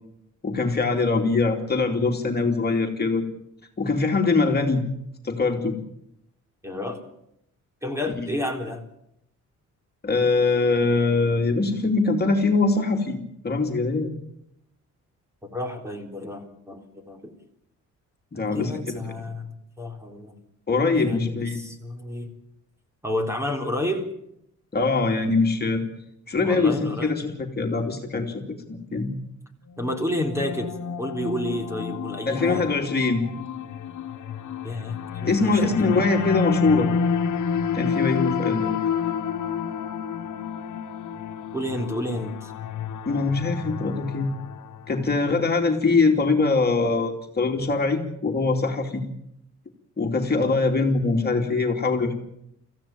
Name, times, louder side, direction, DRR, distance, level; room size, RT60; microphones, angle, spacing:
voice 1, 0.4-3.2 3.8-4.8 5.2-5.8 8.2-8.3 10.0-13.2 13.4-14.1 18.3-19.3 20.7-21.6 24.7-25.8 26.3-29.1 32.3-33.2 35.2-36.9 37.7-38.8 43.1-44.3 44.9-49.0 50.0-52.1, left 3 dB, 35° left, 3 dB, 2.8 m, -23 dB
voice 2, 6.6-7.0 7.8-8.8 15.4-17.3 18.3-20.3 21.1-22.3 23.0-24.1 26.4-27.3 29.8-32.8 34.6-36.1 41.5-42.5, left 1 dB, 10° right, 4 dB, 3.8 m, -30 dB
sound 1, 29.7-45.0, left 6 dB, 80° left, 1.6 m, -30 dB
26.0 x 15.5 x 8.9 m, 0.78 s
cardioid pair, 125°, 30 cm